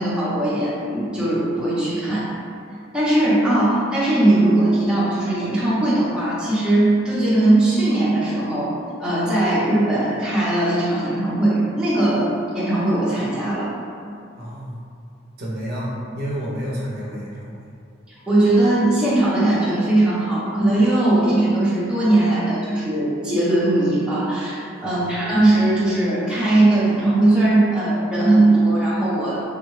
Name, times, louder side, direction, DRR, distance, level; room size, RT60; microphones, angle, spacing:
voice 1, 0.0-2.3 2.9-8.7 9.0-13.7 18.1-29.4, right 1 dB, 5° right, -10 dB, 0.7 m, -19 dB
voice 2, 14.3-14.8 15.4-17.6 24.8-25.2, equal, 50° right, -5 dB, 0.5 m, -30 dB
3.6 x 2.2 x 3.1 m, 2.5 s
head